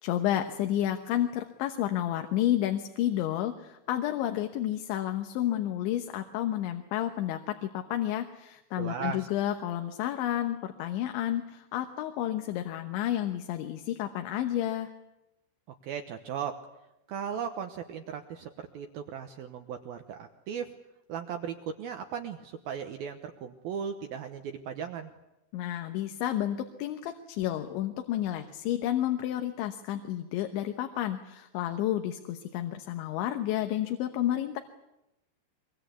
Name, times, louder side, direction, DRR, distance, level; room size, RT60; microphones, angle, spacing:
voice 1, 0.0-14.9 25.5-34.6, left 12 dB, 80° left, 6 dB, 3.4 m, -31 dB
voice 2, 8.8-9.3 15.8-16.6 17.1-20.7 21.1-25.1, right 7 dB, 70° right, 6 dB, 2.4 m, -37 dB
24.0 x 23.0 x 8.3 m, 0.89 s
omnidirectional pair, 5.5 m